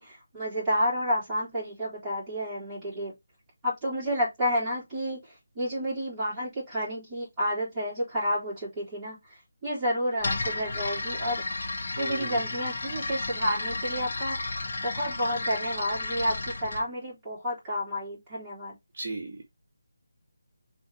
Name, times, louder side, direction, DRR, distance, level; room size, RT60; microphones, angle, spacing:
voice 1, 0.0-3.1 3.6-9.2 9.6-11.4 12.0-14.5 14.8-18.8, equal, 5° right, 3.8 m, -30 dB
sound 1, 10.2-16.8, left 3 dB, 40° left, 2.4 m, -33 dB
voice 2, 12.0-12.3 18.9-19.5, right 3 dB, 35° right, 1.6 m, -36 dB
5.5 x 3.9 x 5.0 m
figure-of-eight pair, 180°, 0 cm